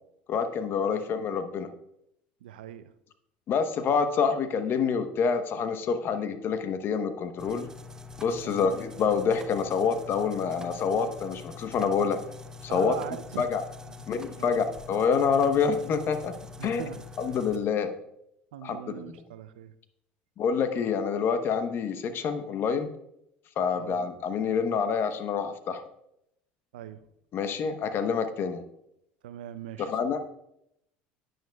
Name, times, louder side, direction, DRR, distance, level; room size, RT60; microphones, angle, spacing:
voice 1, 0.3-1.7 3.5-7.7 8.2-12.2 12.6-12.9 13.4-13.6 14.1-16.4 16.6-16.8 17.2-17.9 18.6-19.2 20.4-22.9 23.6-25.8 27.3-28.6 29.8-30.2, left 6 dB, 50° left, 9 dB, 1.0 m, -27 dB
voice 2, 2.4-2.9 8.4-8.7 12.7-13.5 13.9-14.1 14.4-14.6 16.6-17.0 18.5-19.7 23.7-24.0 26.7-27.0 29.2-29.9, right 11 dB, 90° right, 13 dB, 0.5 m, -40 dB
sound 1, 7.4-17.6, left 4 dB, 15° right, 0.8 m, -45 dB
10.5 x 9.3 x 2.3 m, 0.79 s
supercardioid pair, 85°, 5 cm